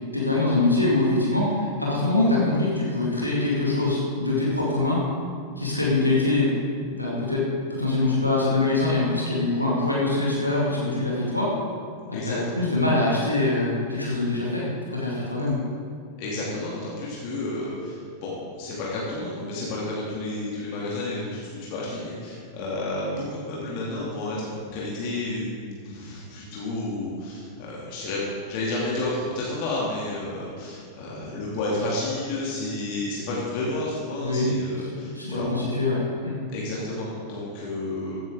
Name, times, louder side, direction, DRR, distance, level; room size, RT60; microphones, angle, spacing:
voice 1, 0.1-5.0 5.6-7.4 7.7-11.5 12.1-15.6 34.2-34.5 34.9-36.3, left 2 dB, 90° left, -5 dB, 2.1 m, -24 dB
voice 2, 12.1-12.6 16.2-35.5 36.5-38.2, left 2 dB, 45° left, -6 dB, 2.6 m, -31 dB
14.5 x 9.1 x 3.8 m, 2.2 s
figure-of-eight pair, 90°, 0 cm